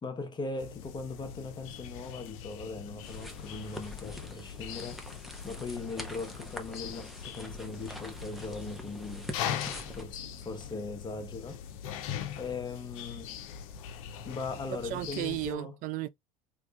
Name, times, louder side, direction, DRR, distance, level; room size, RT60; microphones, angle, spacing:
voice 1, 0.0-5.0 5.4-9.3 9.9-11.6 12.4-13.4 14.2-15.7, left 3 dB, 25° left, 1.0 m, -39 dB
sound 1, 0.6-15.5, left 9 dB, 65° left, 0.6 m, -41 dB
sound 2, 3.0-10.0, left 1 dB, ahead, 0.9 m, -45 dB
voice 2, 14.7-16.1, right 13 dB, 50° right, 0.4 m, -34 dB
3.5 x 3.1 x 2.4 m
hypercardioid pair, 75°, 18 cm